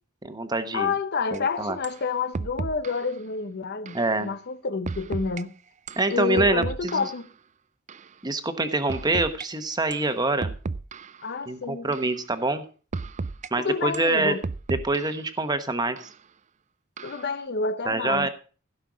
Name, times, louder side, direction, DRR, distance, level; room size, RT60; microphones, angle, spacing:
voice 1, 0.2-0.9 1.3-1.8 3.9-4.3 6.0-7.1 8.2-10.5 11.5-12.6 13.5-14.3 14.8-16.0 17.9-18.3, right 2 dB, 20° right, 1.2 m, -25 dB
voice 2, 0.7-5.5 6.1-7.3 11.2-11.9 13.6-14.4 17.0-18.3, left 4 dB, 55° left, 0.7 m, -29 dB
sound 1, 1.3-1.4 1.8-2.0 2.3-3.1 3.9-4.1 4.9-5.4 5.9-7.2 7.9-8.1 8.9-9.5 9.9-10.1 10.4-11.2 11.9-12.2 12.9-13.5 13.9-15.2 16.0-16.1 17.0-17.3, right 4 dB, 35° right, 0.4 m, -34 dB
16.0 x 5.6 x 6.2 m
head